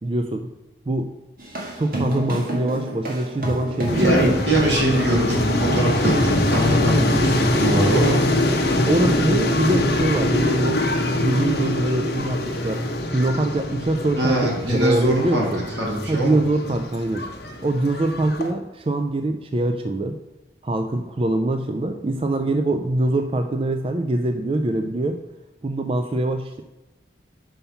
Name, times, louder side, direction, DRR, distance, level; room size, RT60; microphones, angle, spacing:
voice 1, 0.0-0.5 0.9-1.1 1.8-4.4 8.8-10.9 11.2-12.9 13.1-15.6 16.1-17.3 17.6-20.2 20.6-25.2 25.6-26.6, right 1 dB, 30° right, 6 dB, 0.4 m, -23 dB
sound 1, 1.4-6.8, equal, 50° right, 1.9 m, -28 dB
sound 2, 3.9-18.5, left 1 dB, 60° left, 1.0 m, -23 dB
voice 2, 3.9-8.3 14.1-15.5 15.8-16.4, right 1 dB, 80° right, -2 dB, 2.6 m, -22 dB
5.6 x 5.5 x 5.6 m, 1.1 s
head